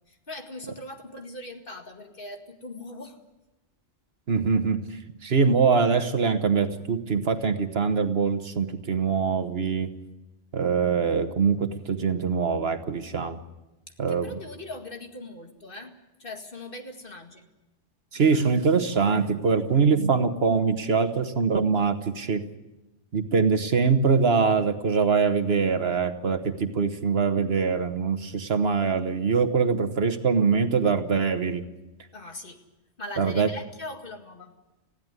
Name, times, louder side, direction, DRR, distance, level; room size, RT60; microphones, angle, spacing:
voice 1, 0.1-3.2 13.9-17.5 32.1-32.6 33.0-34.5, left 2 dB, 50° left, 4 dB, 2.2 m, -40 dB
voice 2, 4.3-4.8 5.2-9.9 10.5-13.4 14.0-14.3 18.1-22.4 23.1-31.6 33.2-33.5, right 5 dB, 60° right, 9 dB, 1.4 m, -23 dB
20.5 x 15.5 x 9.6 m, 1.0 s
omnidirectional pair, 1.2 m